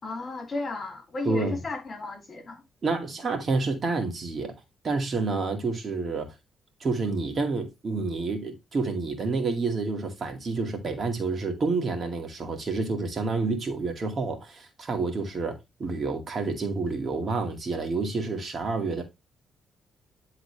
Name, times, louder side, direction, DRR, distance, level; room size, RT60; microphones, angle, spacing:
voice 1, 0.0-2.6, left 3 dB, 40° left, 2.6 m, -34 dB
voice 2, 1.3-1.6 2.8-4.5 4.8-6.3 6.8-19.0, right 3 dB, 40° right, 2.2 m, -29 dB
10.5 x 3.9 x 3.4 m
cardioid pair, 90°, 0 cm